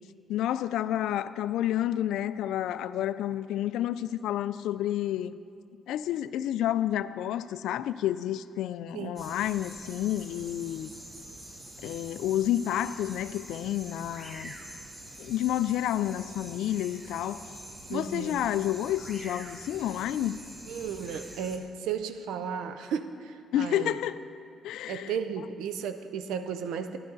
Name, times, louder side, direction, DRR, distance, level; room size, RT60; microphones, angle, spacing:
voice 1, 0.3-5.3 5.9-10.9 11.8-14.5 15.2-17.5 17.9-20.4 23.5-24.2 24.6-25.1, left 12 dB, 85° left, 0.3 m, -30 dB
sound 1, 9.2-21.6, right 1 dB, 25° right, 1.3 m, -45 dB
voice 2, 17.9-18.5 20.7-24.0 24.9-27.0, right 7 dB, 90° right, 0.5 m, -34 dB
12.5 x 10.5 x 3.9 m
cardioid pair, 90°, 0 cm